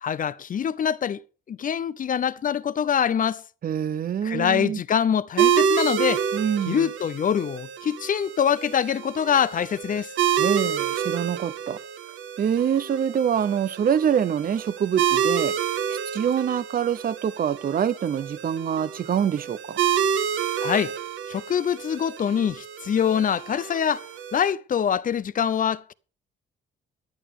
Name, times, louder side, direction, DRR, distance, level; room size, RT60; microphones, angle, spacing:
voice 1, 0.0-1.2 1.5-3.4 4.2-6.3 6.7-10.1 20.6-20.9 21.3-25.9, left 8 dB, 45° left, 0.6 m, -24 dB
voice 2, 3.6-4.8 6.3-6.9 10.4-11.8 12.4-15.5 15.9-19.8, right 8 dB, 45° right, 0.7 m, -25 dB
sound 1, 5.4-24.5, right 8 dB, 80° right, 1.1 m, -28 dB
14.0 x 10.5 x 3.6 m
cardioid pair, 90°, 20 cm